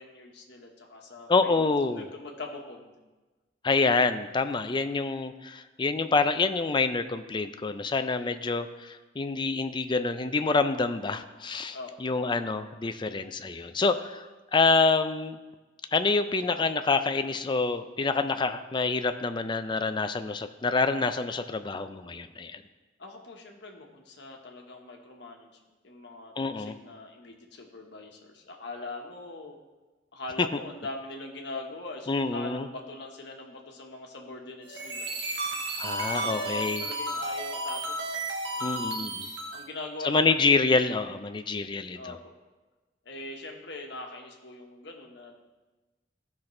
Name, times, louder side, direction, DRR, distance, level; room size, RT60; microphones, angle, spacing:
voice 1, 0.0-2.9 11.7-11.9 23.0-25.5 25.8-29.6 30.1-35.1 35.7-38.2 39.5-40.4 41.9-42.3 43.0-45.3, left 2 dB, 65° left, 1 dB, 1.3 m, -42 dB
voice 2, 1.3-2.1 3.6-14.2 14.5-15.4 15.9-22.6 26.4-26.8 30.4-30.6 32.1-32.7 35.8-36.8 38.6-39.3 40.0-42.2, left 4 dB, 25° left, 9 dB, 0.4 m, -27 dB
sound 1, 34.6-39.7, right 1 dB, 65° right, 1.2 m, -33 dB
15.0 x 5.9 x 3.2 m, 1.2 s
head